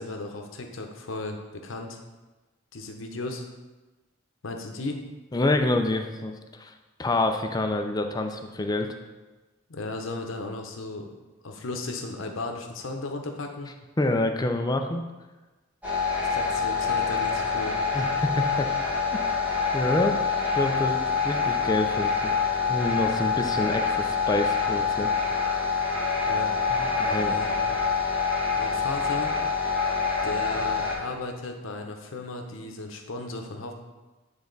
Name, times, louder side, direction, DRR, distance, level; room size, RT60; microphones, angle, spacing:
voice 1, 0.0-2.0 2.7-3.5 4.4-5.0 9.7-11.1 11.4-13.7 16.3-17.8 26.2-26.5 27.2-27.8 28.6-29.3 30.2-33.7, left 2 dB, 75° left, 4 dB, 0.8 m, -35 dB
voice 2, 5.3-6.7 7.0-8.9 14.0-15.0 17.9-18.7 19.7-20.2 20.6-22.3 22.7-25.1 26.7-27.4, left 2 dB, 20° left, 5 dB, 0.5 m, -27 dB
sound 1, 15.8-31.0, left 5 dB, 10° right, 1.2 m, -26 dB
8.6 x 3.5 x 3.9 m, 1.2 s
head